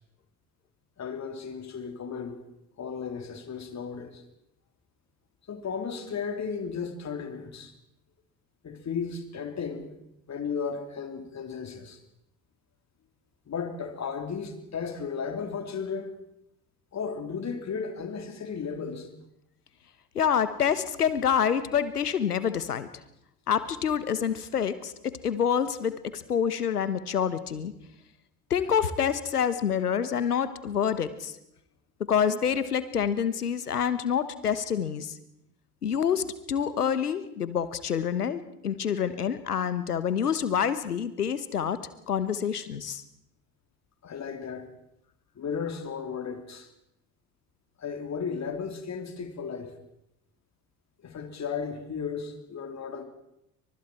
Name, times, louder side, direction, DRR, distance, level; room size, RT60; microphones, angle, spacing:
voice 1, 1.0-2.4 2.8-4.2 5.5-7.7 8.6-9.9 10.3-12.0 13.5-16.2 16.9-19.1 44.0-44.7 45.4-46.7 47.8-49.7 51.0-53.0, left 6 dB, 35° left, 6 dB, 3.7 m, -34 dB
voice 2, 20.1-22.9 23.5-27.7 28.5-31.4 32.1-35.2 35.8-41.8 42.1-43.0, left 8 dB, 85° left, 14 dB, 1.4 m, -27 dB
28.5 x 25.0 x 4.5 m, 0.83 s
figure-of-eight pair, 60°, 45 cm